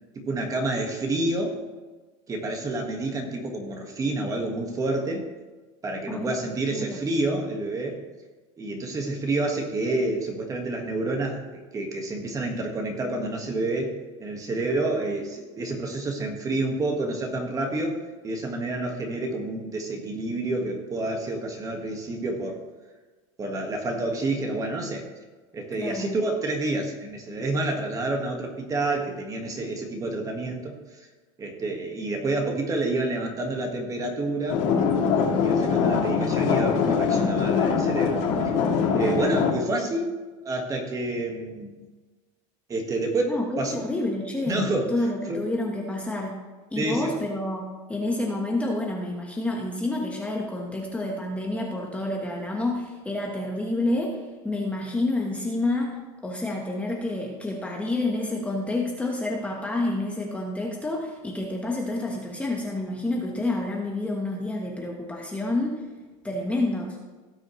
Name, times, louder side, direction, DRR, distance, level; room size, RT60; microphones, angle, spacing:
voice 1, 0.1-1.6 2.3-5.3 5.8-8.0 8.6-13.9 14.2-22.6 23.4-25.1 25.5-31.1 31.4-34.6 35.1-38.2 38.4-38.5 38.9-40.1 40.4-41.8 42.7-43.9 44.5-44.9 45.3-45.4 46.8-47.2, right 2 dB, 20° right, 2 dB, 1.6 m, -29 dB
voice 2, 25.7-26.1 38.9-39.3 39.7-39.9 43.3-46.4 46.7-56.0 56.2-65.8 66.2-67.0, left 2 dB, 10° left, -1 dB, 1.3 m, -29 dB
sound 1, 34.5-39.5, left 6 dB, 65° left, 3.2 m, -23 dB
17.0 x 6.3 x 3.2 m, 1.3 s
supercardioid pair, 140°, 16 cm